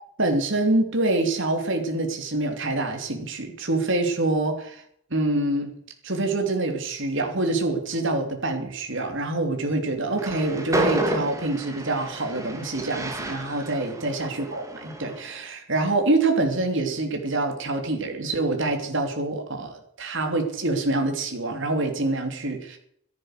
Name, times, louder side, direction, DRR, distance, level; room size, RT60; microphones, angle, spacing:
voice 1, 0.2-4.8 5.1-5.7 6.0-22.8, right 2 dB, 60° right, 4 dB, 3.2 m, -26 dB
Train, 10.1-15.4, right 1 dB, 15° right, 2.4 m, -31 dB
14.0 x 11.5 x 6.7 m, 0.67 s
head